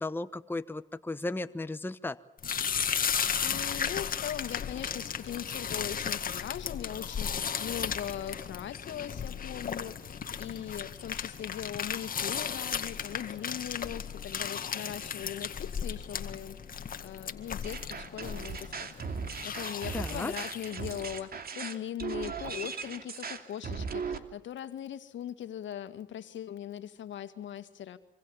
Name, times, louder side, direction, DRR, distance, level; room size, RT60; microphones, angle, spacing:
voice 1, 0.0-2.2 19.9-20.3, left 2 dB, 10° left, 11 dB, 1.0 m, -35 dB
sound 1, 2.4-21.1, left 7 dB, 45° left, 2.0 m, -35 dB
voice 2, 2.9-19.1 19.4-28.0, left 10 dB, 70° left, 10 dB, 2.1 m, -40 dB
sound 2, 17.6-24.2, right 5 dB, 50° right, 2.7 m, -38 dB
26.5 x 25.5 x 7.3 m, 0.68 s
cardioid pair, 90°, 20 cm